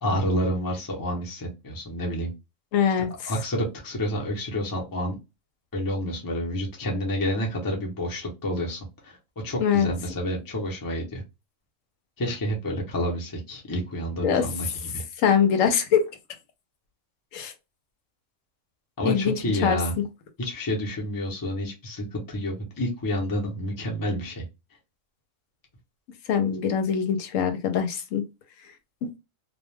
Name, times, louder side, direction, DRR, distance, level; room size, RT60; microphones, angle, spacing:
voice 1, 0.0-2.3 3.3-5.2 5.7-9.2 9.4-11.2 12.2-15.0 19.0-20.0 20.4-24.4, equal, 20° left, 0.6 m, -29 dB
voice 2, 2.7-3.3 9.6-9.9 14.2-14.4 15.2-16.0 17.3-17.5 19.0-19.4 19.6-19.8 26.3-28.2 29.0-29.1, left 8 dB, 80° left, 1.0 m, -23 dB
2.4 x 2.2 x 3.2 m
omnidirectional pair, 1.4 m